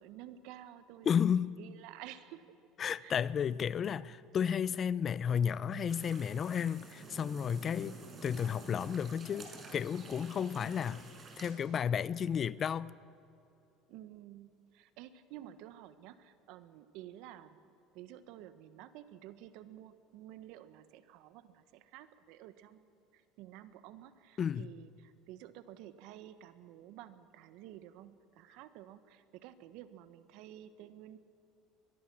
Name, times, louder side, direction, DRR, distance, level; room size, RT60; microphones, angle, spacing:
voice 1, 0.0-1.1 1.6-2.4 3.0-3.2 7.9-8.1 10.6-11.0 13.9-17.6 17.9-31.2, right 12 dB, 70° right, 1.3 m, -52 dB
voice 2, 1.1-1.6 2.8-8.0 8.2-11.0 11.4-12.9 24.4-24.7, left 8 dB, 40° left, 0.6 m, -32 dB
sound 1, 5.9-11.5, right 3 dB, 30° right, 5.0 m, -50 dB
22.5 x 21.5 x 6.2 m
supercardioid pair, 95°, 0 cm